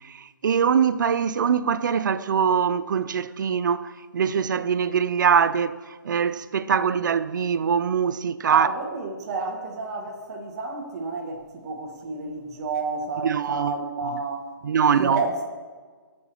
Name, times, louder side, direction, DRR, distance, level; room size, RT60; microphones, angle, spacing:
voice 1, 0.0-8.7 13.2-13.8 14.6-15.2, right 7 dB, 65° right, 0.5 m, -23 dB
voice 2, 8.5-15.4, right 3 dB, 45° right, 1.8 m, -30 dB
16.0 x 6.4 x 2.9 m
figure-of-eight pair, 135°, 11 cm